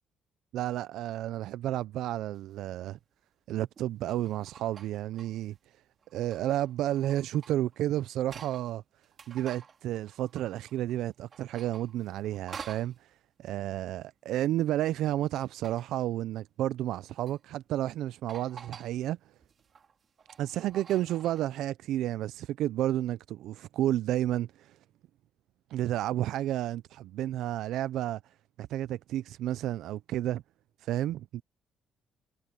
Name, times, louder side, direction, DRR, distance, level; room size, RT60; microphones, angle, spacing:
voice 1, 0.5-3.0 3.5-5.6 6.1-8.8 9.3-13.1 13.4-19.2 20.4-24.8 25.7-28.2 28.6-30.4 30.8-31.4, right 13 dB, 80° right, 0.4 m, -31 dB
sound 1, 2.3-2.5 3.7-5.5 6.0-8.7 9.0-11.0 11.3-13.0 15.0-16.0 16.9-17.4 17.8-17.9 18.3-18.9 19.4-21.7, right 6 dB, 45° right, 4.3 m, -50 dB
cardioid pair, 95°, 0 cm